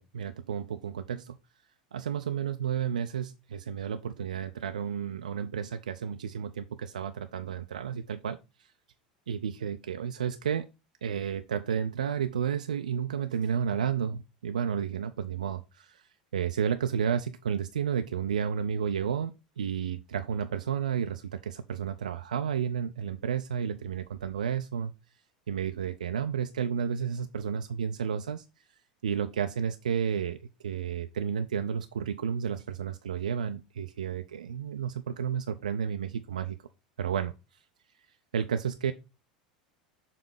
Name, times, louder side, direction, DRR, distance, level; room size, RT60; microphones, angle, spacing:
voice 1, 0.0-1.4 1.9-8.7 9.3-10.7 11.0-16.0 16.3-24.9 25.5-28.4 29.0-36.6 37.0-37.3 38.3-38.9, right 7 dB, 70° right, 0.4 m, -32 dB
6.8 x 3.0 x 4.7 m
figure-of-eight pair, 80°, 4 cm